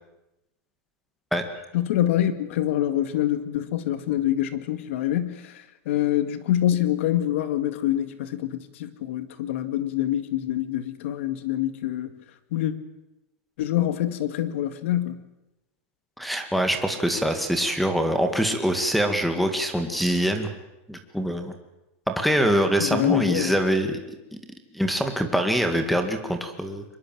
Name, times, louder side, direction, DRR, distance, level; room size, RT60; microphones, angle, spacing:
voice 1, 1.7-12.1 12.5-12.7 13.6-15.2 22.8-23.6, left 12 dB, 65° left, 12 dB, 2.2 m, -25 dB
voice 2, 16.2-20.5 20.9-21.5 22.1-24.0 24.7-26.8, equal, ahead, 8 dB, 1.9 m, -24 dB
24.0 x 21.5 x 7.7 m, 0.94 s
supercardioid pair, 170°, 7 cm